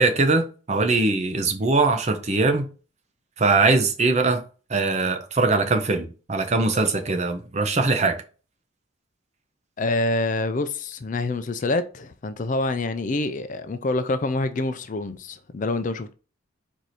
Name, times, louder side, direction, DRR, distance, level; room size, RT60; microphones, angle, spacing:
voice 1, 0.0-2.7 3.4-4.4 4.7-8.2, right 3 dB, 30° right, 0.6 m, -21 dB
voice 2, 9.8-16.1, left 2 dB, 40° left, 0.4 m, -26 dB
4.7 x 2.7 x 4.1 m
head